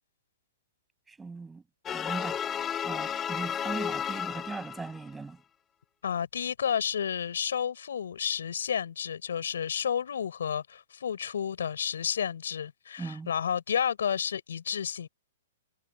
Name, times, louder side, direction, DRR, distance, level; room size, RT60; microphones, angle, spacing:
voice 1, 1.1-1.6 1.9-2.4 2.8-5.4 13.0-13.3, right 4 dB, 10° right, 8.0 m, -39 dB
sound 1, 1.9-5.1, left 8 dB, 20° left, 2.2 m, -33 dB
voice 2, 6.0-15.1, left 8 dB, 80° left, 5.8 m, -31 dB
hypercardioid pair, 135°, 0 cm